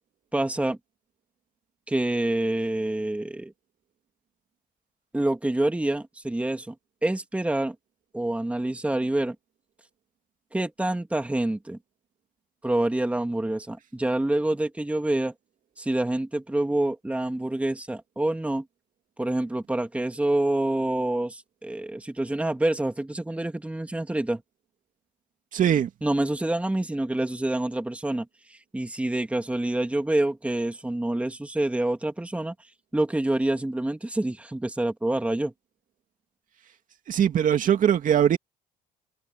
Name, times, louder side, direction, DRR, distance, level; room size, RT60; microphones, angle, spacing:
voice 1, 0.3-0.8 1.9-3.5 5.1-6.7 7.0-7.7 8.1-9.4 10.5-11.8 12.6-15.3 15.8-18.6 19.2-24.4 26.0-32.5 32.9-35.5, right 1 dB, 10° right, 2.4 m, -27 dB
voice 2, 25.5-25.9 37.1-38.4, right 9 dB, 50° right, 2.5 m, -21 dB
cardioid pair, 110°, 17 cm